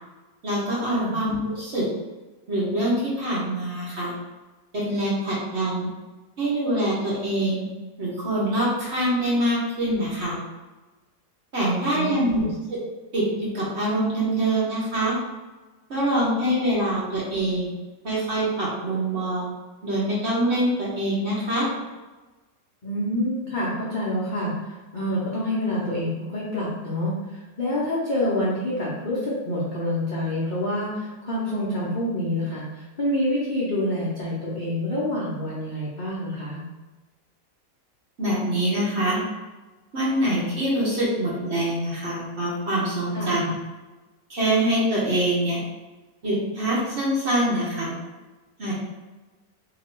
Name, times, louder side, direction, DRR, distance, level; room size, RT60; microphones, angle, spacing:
voice 1, 0.4-1.8 2.5-4.1 4.7-5.9 6.4-7.6 8.0-10.4 11.5-12.4 12.7-12.8 13.1-15.2 15.9-17.7 18.0-19.5 19.8-21.7 38.2-39.2 39.9-43.5 44.3-45.6 46.2-47.9 48.6-48.7, right 1 dB, 45° right, -6 dB, 1.1 m, -24 dB
voice 2, 11.6-12.5 22.8-36.6 43.1-43.4, left 1 dB, 45° left, -8 dB, 0.6 m, -27 dB
3.0 x 2.9 x 4.4 m, 1.2 s
omnidirectional pair, 1.9 m